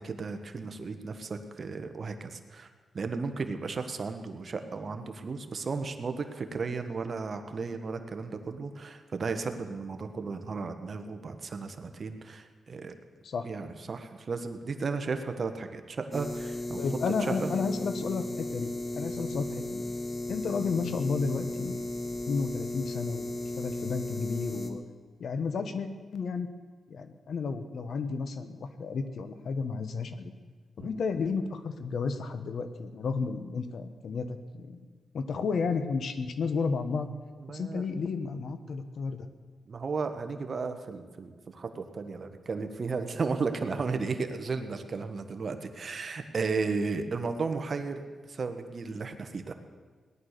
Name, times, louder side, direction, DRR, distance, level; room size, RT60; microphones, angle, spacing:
voice 1, 0.0-2.7 2.9-12.9 13.4-16.8 17.3-17.5 30.8-31.0 37.4-37.8 39.7-49.5, right 4 dB, 50° right, 7 dB, 1.4 m, -34 dB
sound 1, 16.1-24.7, left 1 dB, 25° left, 1.5 m, -35 dB
voice 2, 16.8-19.8 20.3-21.8 22.3-23.3 23.6-24.8 25.2-26.5 26.9-30.3 30.8-34.8 35.1-37.1 37.5-39.3, left 5 dB, 70° left, 10 dB, 1.2 m, -32 dB
18.0 x 11.0 x 6.7 m, 1.5 s
cardioid pair, 90°, 0 cm